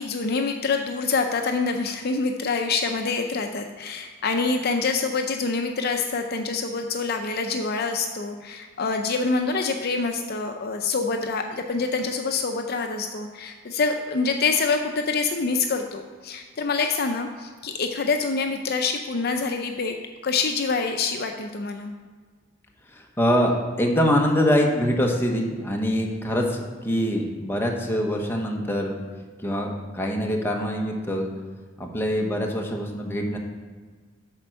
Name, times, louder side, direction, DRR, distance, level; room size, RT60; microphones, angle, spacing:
voice 1, 0.0-20.0 20.2-21.9, left 4 dB, 55° left, 5 dB, 0.6 m, -26 dB
voice 2, 22.9-28.9 29.4-31.3 31.8-33.4, equal, 10° left, 0 dB, 1.0 m, -24 dB
8.6 x 4.4 x 6.4 m, 1.5 s
head